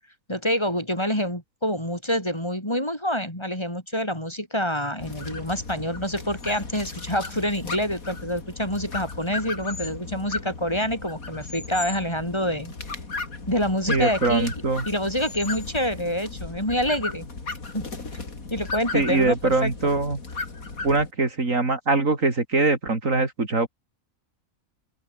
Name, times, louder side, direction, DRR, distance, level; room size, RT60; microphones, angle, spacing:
voice 1, 0.3-13.0 13.5-14.5 14.8-17.2 17.7-17.9 18.5-19.7, equal, 20° left, 7.0 m, -27 dB
sound 1, 5.0-21.1, left 3 dB, 90° left, 3.8 m, -36 dB
voice 2, 13.9-14.8 18.9-20.2 20.8-23.7, right 3 dB, 65° right, 3.9 m, -23 dB
open air
omnidirectional pair, 1.4 m